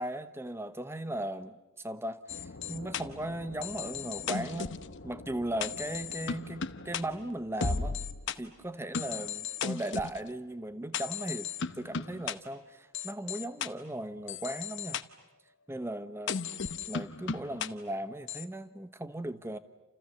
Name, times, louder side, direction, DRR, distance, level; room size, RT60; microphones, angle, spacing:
voice 1, 0.0-1.6 1.8-2.2 2.7-4.7 5.0-8.0 8.4-11.5 11.8-15.0 15.7-16.5 16.9-19.6, right 1 dB, 10° right, 12 dB, 1.0 m, -37 dB
sound 1, 2.3-8.4 8.9-10.2 10.9-12.3 12.9-13.7 14.3-15.0 16.3-17.7 18.3-18.4, left 5 dB, 60° left, 0.9 m, -36 dB
29.0 x 29.0 x 7.0 m, 1.1 s
head